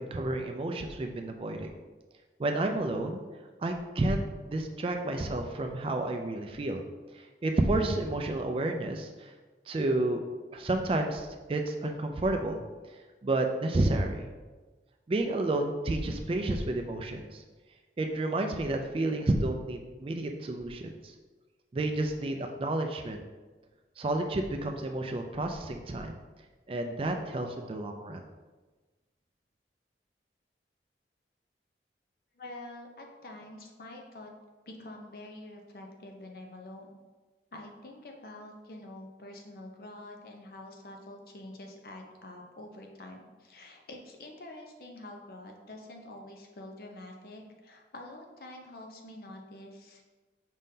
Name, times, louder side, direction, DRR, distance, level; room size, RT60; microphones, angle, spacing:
voice 1, 0.0-1.7 2.4-3.2 3.6-6.8 7.1-9.3 9.7-10.2 10.5-12.6 13.2-14.3 15.1-17.4 18.0-21.1 21.7-23.2 24.0-26.2 26.7-28.2, right 2 dB, 30° right, 4 dB, 0.3 m, -30 dB
voice 2, 32.3-34.3 34.7-37.0 37.5-50.0, left 1 dB, 55° left, 2 dB, 0.6 m, -46 dB
5.2 x 3.7 x 2.7 m, 1.3 s
head